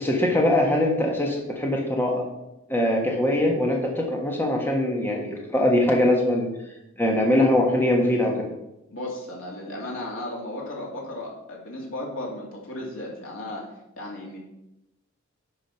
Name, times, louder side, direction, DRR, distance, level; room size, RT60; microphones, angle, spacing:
voice 1, 0.0-2.2 2.7-6.5 7.0-8.5, left 1 dB, 10° left, 0 dB, 1.4 m, -22 dB
voice 2, 8.9-13.6 14.0-14.4, left 1 dB, 90° left, -2 dB, 2.7 m, -35 dB
10.5 x 5.1 x 5.8 m, 0.90 s
head